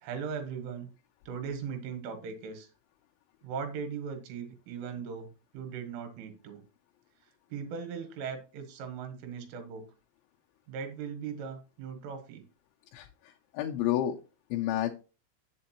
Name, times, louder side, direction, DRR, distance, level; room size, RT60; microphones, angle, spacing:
voice 1, 0.0-0.9 1.3-2.7 3.4-6.6 7.5-9.9 10.7-12.5, right 6 dB, 80° right, 6 dB, 3.8 m, -39 dB
voice 2, 12.9-14.2 14.5-14.9, left 12 dB, 80° left, 2 dB, 2.7 m, -30 dB
7.9 x 7.7 x 2.9 m, 0.32 s
omnidirectional pair, 5.6 m